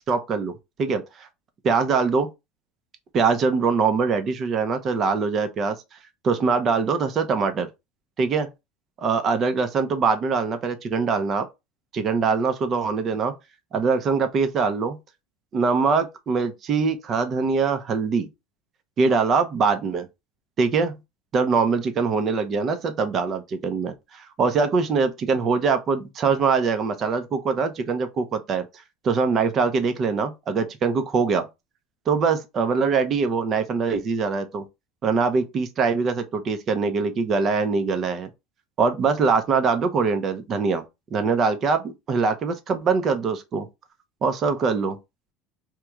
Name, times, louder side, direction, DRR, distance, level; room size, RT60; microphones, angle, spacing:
voice 1, 0.1-1.3 1.6-2.3 3.1-5.8 6.2-7.7 8.2-8.5 9.0-11.5 11.9-13.3 13.7-15.0 15.5-18.3 19.0-20.1 20.6-21.0 21.3-28.7 29.0-31.5 32.1-34.6 35.0-38.3 38.8-40.8 41.1-43.7 44.2-45.0, right 5 dB, 35° right, 0.7 m, -23 dB
3.0 x 2.3 x 3.5 m
supercardioid pair, 120°, 0 cm